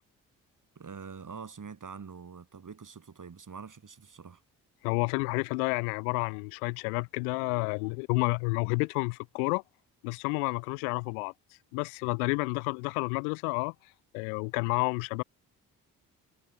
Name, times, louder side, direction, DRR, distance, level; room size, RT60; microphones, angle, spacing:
voice 1, 0.7-4.4, right 5 dB, 45° right, 6.2 m, -45 dB
voice 2, 4.8-9.6 10.0-11.3 11.7-13.7 14.1-15.2, left 35 dB, 85° left, 0.7 m, -30 dB
hypercardioid pair, 40°, 43 cm